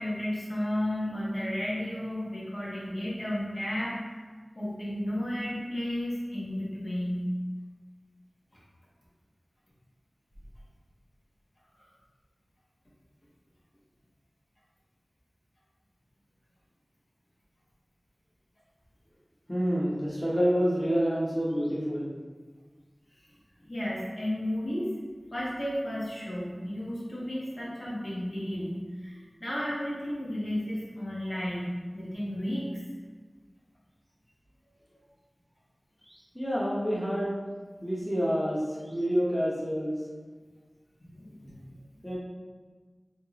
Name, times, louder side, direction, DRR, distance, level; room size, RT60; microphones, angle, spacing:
voice 1, 0.0-4.2 4.5-7.3 11.8-11.9 23.7-24.9 25.3-32.7 41.0-41.6, left 1 dB, 60° left, -7 dB, 1.2 m, -33 dB
voice 2, 19.5-22.1 36.0-37.4 37.8-40.0 42.0-42.2, equal, 5° left, -6 dB, 0.9 m, -28 dB
4.3 x 2.9 x 3.0 m, 1.4 s
wide cardioid pair, 55°, 0 cm